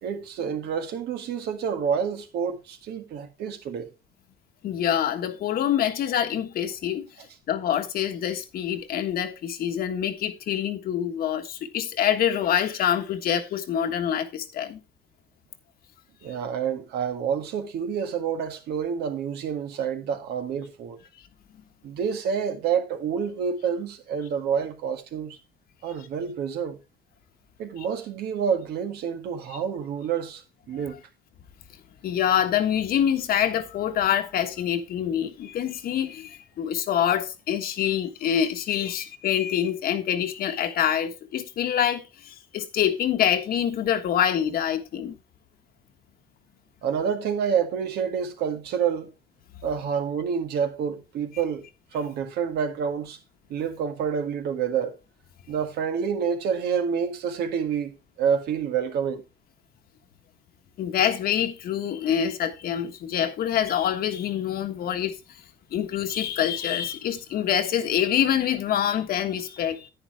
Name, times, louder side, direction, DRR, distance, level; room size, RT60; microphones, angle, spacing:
voice 1, 0.0-3.9 16.2-21.0 21.8-25.4 25.8-26.8 27.6-30.4 30.7-31.0 46.8-49.1 49.6-51.7 51.9-53.2 53.5-55.0 55.5-59.2, right 7 dB, 75° right, 1.8 m, -28 dB
voice 2, 4.6-7.0 7.5-14.8 32.0-45.2 60.8-65.4 65.7-69.9, left 9 dB, 65° left, 1.4 m, -26 dB
10.0 x 9.7 x 3.4 m
cardioid pair, 110°, 17 cm